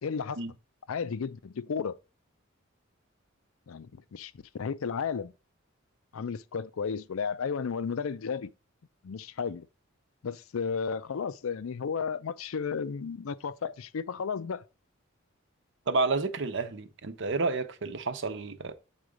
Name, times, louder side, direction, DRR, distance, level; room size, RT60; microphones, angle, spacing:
voice 1, 0.0-0.4 0.9-2.0 3.7-5.3 6.1-8.5 9.0-9.7 10.2-14.6, left 6 dB, 80° left, 0.5 m, -33 dB
voice 2, 15.9-18.7, right 3 dB, 60° right, 0.8 m, -30 dB
7.9 x 4.0 x 4.9 m
head